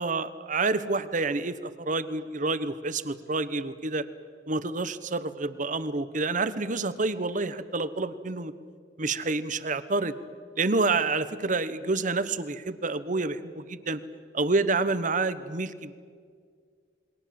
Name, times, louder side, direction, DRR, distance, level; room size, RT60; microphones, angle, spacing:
voice 1, 0.0-4.0 4.5-8.5 9.0-10.1 10.6-14.0 14.3-15.9, right 3 dB, 45° right, 13 dB, 1.1 m, -28 dB
28.5 x 22.0 x 7.7 m, 2.1 s
head